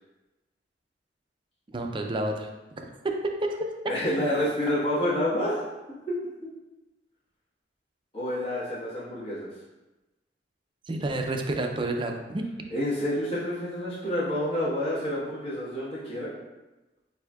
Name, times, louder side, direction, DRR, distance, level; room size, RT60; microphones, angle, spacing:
voice 1, 1.7-2.5 2.8-3.7 10.9-12.4, right 2 dB, 30° right, 3 dB, 0.4 m, -30 dB
voice 2, 3.9-5.6 6.1-6.2 8.1-9.5 12.7-16.3, left 1 dB, 35° left, -10 dB, 1.4 m, -28 dB
7.7 x 2.7 x 2.3 m, 1.1 s
head